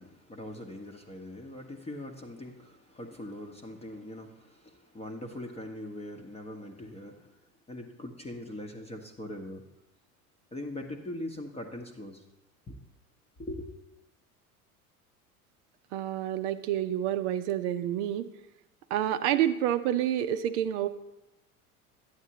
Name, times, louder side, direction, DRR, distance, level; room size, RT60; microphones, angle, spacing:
voice 1, 0.0-7.4 7.7-9.6 10.5-12.2 12.7-12.8 13.4-13.7, left 1 dB, 15° left, 3 dB, 0.8 m, -41 dB
voice 2, 15.9-18.3 18.9-20.9, right 11 dB, 50° right, 10 dB, 0.6 m, -28 dB
11.5 x 8.9 x 2.8 m, 0.94 s
figure-of-eight pair, 75°, 44 cm